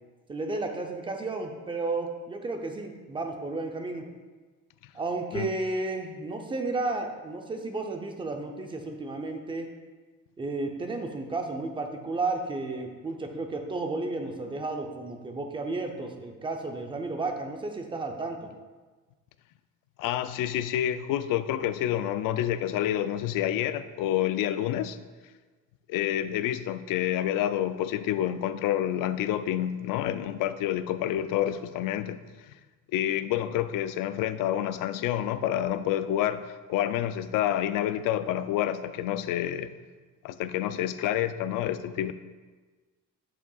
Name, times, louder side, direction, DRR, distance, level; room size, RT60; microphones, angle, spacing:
voice 1, 0.3-4.1 4.9-9.7 10.4-18.5, right 3 dB, 15° right, 4 dB, 0.5 m, -33 dB
voice 2, 20.0-25.0 25.9-32.2 32.5-32.6 32.9-39.7 40.2-42.1, left 11 dB, 75° left, 12 dB, 0.5 m, -28 dB
8.1 x 7.3 x 2.3 m, 1.3 s
cardioid pair, 160°, 33 cm